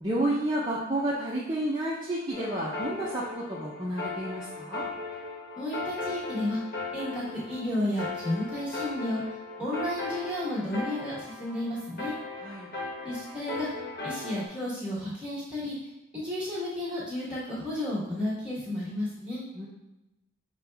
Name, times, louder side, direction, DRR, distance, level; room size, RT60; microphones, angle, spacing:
voice 1, 0.0-4.8 12.4-12.7 19.5-19.7, right 1 dB, 20° right, -6 dB, 0.6 m, -30 dB
sound 1, 2.3-14.5, left 3 dB, 50° left, 1.1 m, -37 dB
voice 2, 5.5-6.6 6.9-9.2 9.6-12.1 13.0-13.7 14.0-15.8 16.1-19.4, left 1 dB, 5° right, -8 dB, 1.5 m, -32 dB
6.6 x 2.3 x 3.4 m, 0.98 s
head